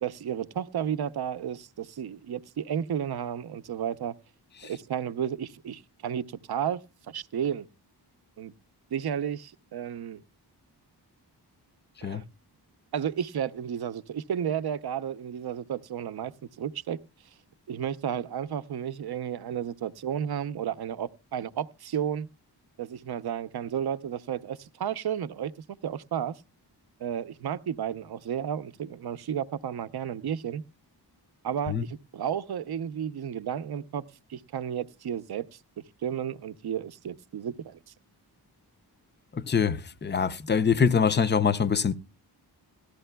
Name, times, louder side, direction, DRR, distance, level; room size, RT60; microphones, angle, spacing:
voice 1, 0.0-4.1 4.6-6.8 7.1-7.7 8.4-8.5 8.9-10.2 12.0-12.2 12.9-16.3 16.6-17.0 17.7-22.3 22.8-26.4 27.0-30.6 31.4-35.6 36.0-37.8, right 9 dB, 65° right, 0.6 m, -32 dB
voice 2, 39.3-41.9, left 6 dB, 25° left, 0.5 m, -24 dB
18.5 x 13.0 x 2.2 m
wide cardioid pair, 170°, 41 cm